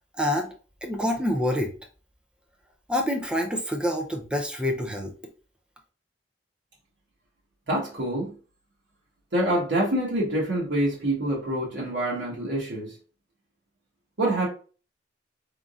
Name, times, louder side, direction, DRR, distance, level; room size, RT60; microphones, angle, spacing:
voice 1, 0.2-0.5 0.8-1.7 2.9-5.1, left 1 dB, 5° right, 3 dB, 0.5 m, -26 dB
voice 2, 7.7-8.3 9.3-12.9 14.2-14.5, right 1 dB, 70° right, -5 dB, 1.3 m, -26 dB
3.8 x 3.6 x 2.4 m, 0.38 s
head